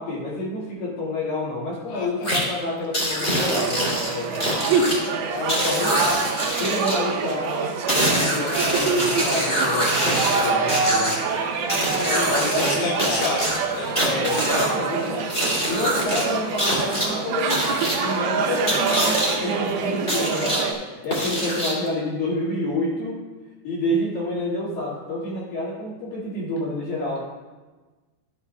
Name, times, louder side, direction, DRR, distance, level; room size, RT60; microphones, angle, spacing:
voice 1, 0.0-4.6 5.3-6.3 6.6-7.5 8.1-11.2 12.2-13.2 14.0-15.3 15.5-20.6 21.0-23.3 23.6-27.2, left 1 dB, 55° left, -6 dB, 3.3 m, -28 dB
voice 2, 1.9-2.3 4.3-5.0 12.0-13.4 13.7-13.9 14.3-14.7, left 5 dB, 85° left, 0 dB, 2.3 m, -30 dB
sound 1, 2.2-2.4 2.9-5.0 5.5-7.0 7.9-11.1 11.7-12.7 13.0-14.7 15.3-16.2 16.6-17.1 17.5-18.0 18.7-19.3 20.1-20.6 21.1-21.9, equal, 25° left, 1.2 m, -24 dB
sound 2, 3.3-20.7, right 5 dB, 90° right, 3.3 m, -26 dB
12.5 x 8.2 x 2.3 m, 1.2 s
omnidirectional pair, 5.3 m